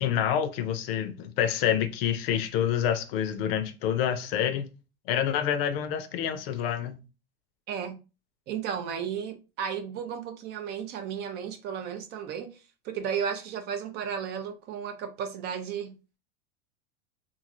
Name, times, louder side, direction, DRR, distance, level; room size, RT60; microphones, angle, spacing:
voice 1, 0.0-4.7 5.1-7.0, left 9 dB, 60° left, 0.6 m, -27 dB
voice 2, 7.7-8.0 8.5-12.5 12.8-15.9, right 7 dB, 30° right, 0.4 m, -34 dB
3.1 x 2.5 x 2.5 m
supercardioid pair, 145°, 32 cm